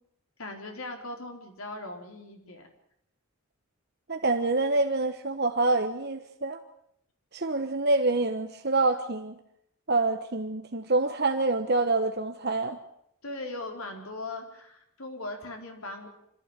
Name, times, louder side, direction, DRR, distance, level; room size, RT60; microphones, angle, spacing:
voice 1, 0.4-2.7 13.2-16.1, left 2 dB, 80° left, 3 dB, 4.6 m, -39 dB
voice 2, 4.1-6.6 7.3-9.4 9.9-12.8, right 3 dB, 50° right, 6 dB, 1.3 m, -26 dB
26.0 x 15.0 x 9.1 m, 0.74 s
head